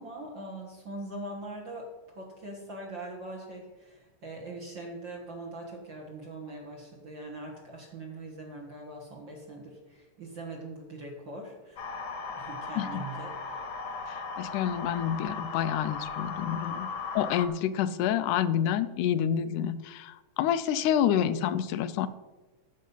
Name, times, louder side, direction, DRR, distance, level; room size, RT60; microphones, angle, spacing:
voice 1, 0.0-13.3, right 2 dB, 45° right, -1 dB, 1.9 m, -42 dB
sound 1, 11.8-17.5, left 4 dB, 60° left, 1.9 m, -37 dB
voice 2, 14.1-16.9 17.2-22.1, left 9 dB, 85° left, 14 dB, 2.1 m, -28 dB
14.5 x 6.4 x 5.5 m, 1.2 s
omnidirectional pair, 3.6 m